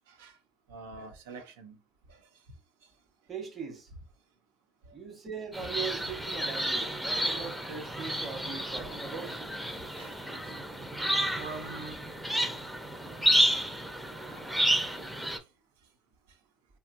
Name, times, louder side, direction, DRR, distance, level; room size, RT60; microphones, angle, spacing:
voice 1, 0.1-0.4 0.7-1.8 2.1-2.2 4.9-5.0 10.0-10.2 11.3-12.0 14.3-14.5, right 4 dB, 80° right, 0.6 m, -44 dB
voice 2, 3.3-3.9 4.9-9.3, right 6 dB, 35° right, 1.0 m, -40 dB
sound 1, 5.5-15.4, equal, 5° right, 0.6 m, -31 dB
2.7 x 2.3 x 2.6 m
hypercardioid pair, 75°, 0 cm